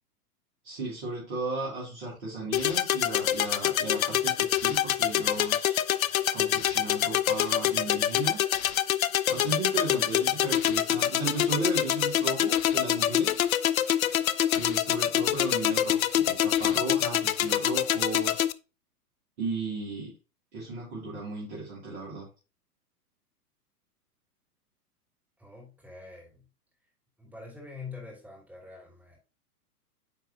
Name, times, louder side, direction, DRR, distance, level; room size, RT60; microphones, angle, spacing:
voice 1, 0.6-5.8 6.3-8.4 9.3-13.4 14.0-14.2 14.5-18.4 19.4-20.1 20.5-22.3, right 2 dB, 45° right, -5 dB, 2.7 m, -35 dB
sound 1, 2.5-18.5, left 11 dB, 65° left, 0.5 m, -26 dB
voice 2, 25.4-26.4 27.2-29.2, left 4 dB, 5° right, -3 dB, 2.6 m, -45 dB
9.4 x 3.8 x 2.7 m, 0.32 s
figure-of-eight pair, 105°, 46 cm